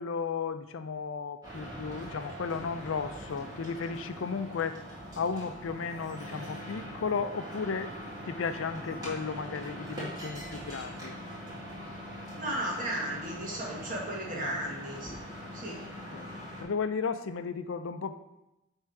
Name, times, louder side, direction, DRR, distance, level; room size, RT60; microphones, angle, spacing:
voice 1, 0.0-4.8 5.2-7.9 8.2-11.2 14.3-14.6 15.8-16.3 16.6-18.1, left 5 dB, 70° left, 11 dB, 0.4 m, -34 dB
sound 1, 1.4-16.6, equal, 20° right, 1.9 m, -42 dB
voice 2, 12.3-15.2 15.5-15.8, right 1 dB, 40° right, -3 dB, 1.7 m, -35 dB
9.0 x 3.6 x 4.7 m, 0.92 s
head